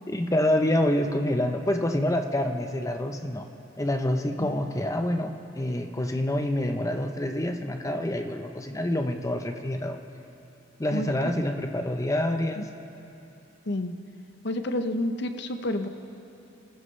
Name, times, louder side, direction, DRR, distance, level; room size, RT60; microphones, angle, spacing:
voice 1, 0.1-3.5 3.8-10.0 10.8-12.7, left 1 dB, 15° left, 5 dB, 0.8 m, -27 dB
voice 2, 14.4-15.9, left 1 dB, 65° left, 7 dB, 0.9 m, -29 dB
28.5 x 15.0 x 3.3 m, 2.9 s
head